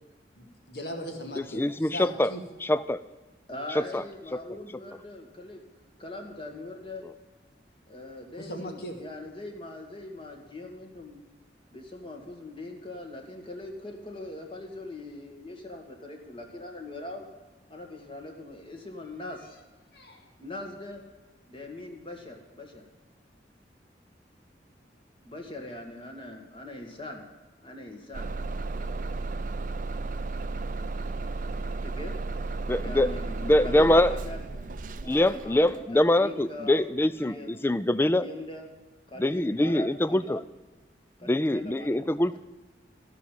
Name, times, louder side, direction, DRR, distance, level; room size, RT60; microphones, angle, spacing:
voice 1, 0.4-2.4 8.4-8.9 19.9-20.3, equal, 60° left, 2 dB, 2.2 m, -39 dB
voice 2, 1.5-2.3 2.6-3.0 3.9-4.0 32.7-33.1 33.4-34.1 35.1-38.3 39.2-40.4 41.3-42.4, left 1 dB, 10° left, 15 dB, 0.3 m, -24 dB
voice 3, 3.5-7.0 7.9-11.2 11.7-17.3 17.7-19.6 20.4-21.0 21.5-22.8 25.2-27.2 27.6-28.3 31.7-32.5 32.8-37.6 38.0-38.7 39.1-40.4 41.2-42.1, left 2 dB, 30° left, 2 dB, 1.8 m, -41 dB
Bus / Engine starting, 28.1-35.9, right 3 dB, 45° right, 0.5 m, -34 dB
15.0 x 5.7 x 9.1 m, 1.2 s
head